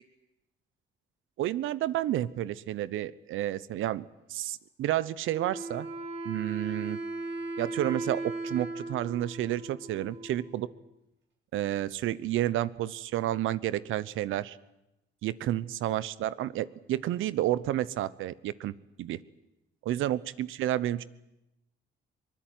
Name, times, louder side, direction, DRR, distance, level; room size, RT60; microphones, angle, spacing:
voice 1, 1.4-5.9 6.2-7.0 7.6-10.7 11.5-14.6 15.2-18.7 19.0-19.2 19.8-21.0, right 13 dB, 85° right, 17 dB, 1.0 m, -30 dB
Wind instrument woodwind instrument, 5.3-10.8, right 2 dB, 60° right, 8.0 m, -37 dB
24.0 x 20.5 x 9.2 m, 0.89 s
cardioid pair, 90°, 20 cm